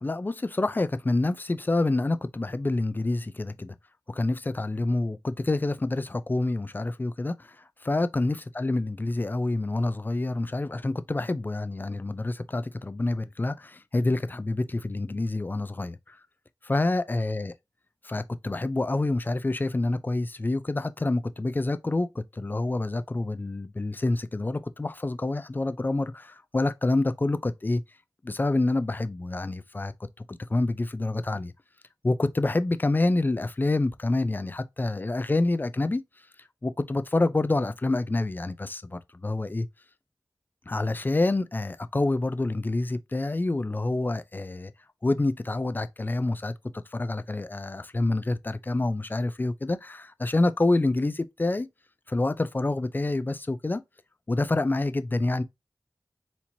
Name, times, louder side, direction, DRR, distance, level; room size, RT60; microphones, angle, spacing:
voice 1, 0.0-3.8 4.1-7.6 7.8-16.2 16.6-17.5 18.0-27.8 28.2-29.9 30.3-31.5 32.0-36.0 36.6-39.7 40.7-44.7 45.0-46.5 46.9-51.7 52.1-53.8 54.3-55.4, left 2 dB, 25° left, 0.3 m, -27 dB
4.2 x 2.9 x 2.7 m
wide cardioid pair, 65°, 7 cm